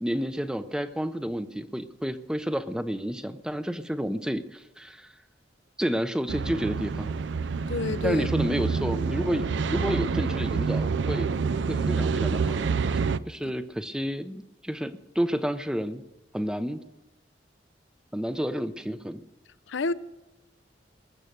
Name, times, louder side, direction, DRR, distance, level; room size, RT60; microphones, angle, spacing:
voice 1, 0.0-5.1 5.8-7.1 8.0-11.4 11.7-12.6 12.9-13.0 13.3-16.0 16.3-16.8 18.1-19.2, equal, 5° right, 0.6 m, -30 dB
sound 1, 6.3-13.2, right 5 dB, 75° right, 0.5 m, -27 dB
voice 2, 7.7-8.3 13.4-13.5 19.7-19.9, left 3 dB, 85° left, 0.6 m, -29 dB
20.5 x 7.5 x 6.7 m
head